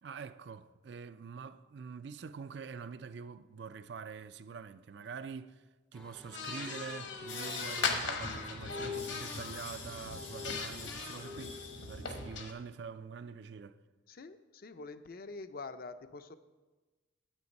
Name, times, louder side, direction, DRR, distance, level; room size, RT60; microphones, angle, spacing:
voice 1, 0.0-5.6 5.9-13.8, right 6 dB, 60° right, 0.4 m, -45 dB
sound 1, 5.9-11.2, left 1 dB, 5° left, 0.5 m, -56 dB
sound 2, 6.3-9.7 10.1-12.5, left 4 dB, 65° left, 1.2 m, -39 dB
sound 3, 7.3-12.3, left 3 dB, 85° left, 1.9 m, -42 dB
voice 2, 14.1-16.4, left 3 dB, 50° left, 0.5 m, -46 dB
9.7 x 7.9 x 5.3 m
head